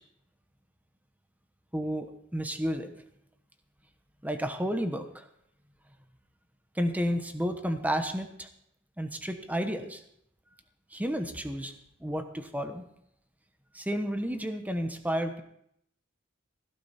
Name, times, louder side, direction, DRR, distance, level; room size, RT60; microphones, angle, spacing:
voice 1, 1.7-2.9 4.2-5.3 6.7-8.5 9.0-10.0 10.9-11.7 12.0-12.8 13.7-15.4, equal, 10° right, 7 dB, 1.1 m, -31 dB
16.5 x 12.0 x 4.3 m, 0.73 s
head